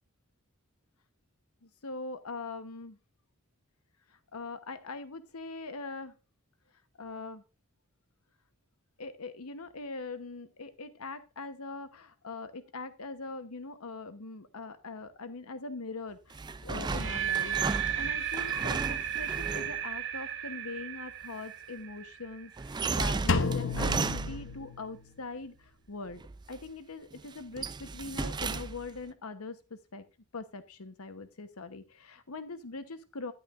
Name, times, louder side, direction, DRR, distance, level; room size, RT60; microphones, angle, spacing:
voice 1, 1.6-3.0 4.3-6.1 7.0-7.4 9.0-26.2 26.5-30.0 30.3-33.3, left 3 dB, 80° left, 11 dB, 1.1 m, -42 dB
sound 1, 16.3-19.8 22.6-24.6 26.1-26.7 27.1-29.0, right 4 dB, 20° right, 0.4 m, -34 dB
sound 2, 16.8-22.8, right 10 dB, 60° right, 1.2 m, -34 dB
Drum, 23.3-25.2, left 4 dB, 60° left, 0.8 m, -31 dB
11.0 x 8.9 x 2.5 m, 0.30 s
head